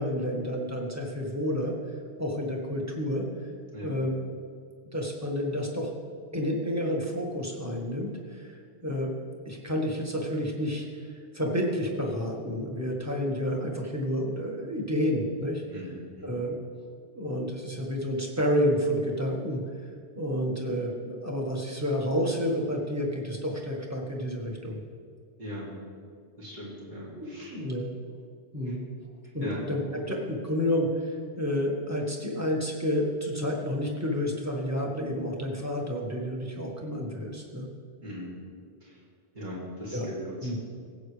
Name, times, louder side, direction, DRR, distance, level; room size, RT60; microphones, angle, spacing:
voice 1, 0.0-1.8 2.2-3.3 3.8-4.1 4.9-5.9 6.3-9.1 9.4-15.6 16.2-16.6 17.1-19.6 20.2-24.8 27.1-27.9 28.5-28.8 29.3-29.8 30.1-37.7 39.9-40.1 40.4-40.6, equal, 15° right, -1 dB, 1.5 m, -30 dB
voice 2, 15.7-16.4 25.4-25.7 26.4-27.6 28.6-28.7 29.4-29.6 38.0-38.3 38.8-39.0 39.3-40.6, equal, 45° right, -6 dB, 2.7 m, -39 dB
17.0 x 8.1 x 3.3 m, 2.1 s
omnidirectional pair, 1.1 m